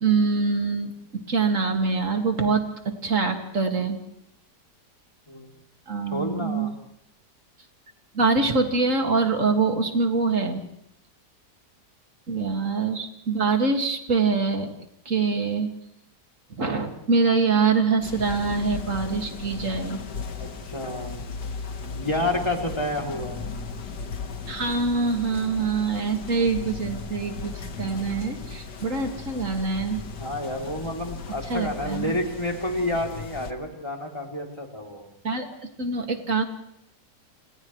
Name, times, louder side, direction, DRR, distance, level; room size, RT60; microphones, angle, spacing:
voice 1, 0.0-4.0 5.9-6.7 8.1-10.6 12.3-14.7 15.1-15.7 16.6-20.0 24.5-30.0 31.5-32.1 35.2-35.5 35.8-36.4, right 4 dB, 50° right, 4 dB, 2.6 m, -24 dB
voice 2, 5.3-5.6 6.0-6.7 12.3-12.4 20.4-21.3 22.0-23.4 30.2-35.1, left 1 dB, 15° left, 0 dB, 3.1 m, -30 dB
sound 1, 18.0-33.5, left 4 dB, 75° left, 2.0 m, -37 dB
29.5 x 28.0 x 3.2 m, 0.73 s
omnidirectional pair, 1.8 m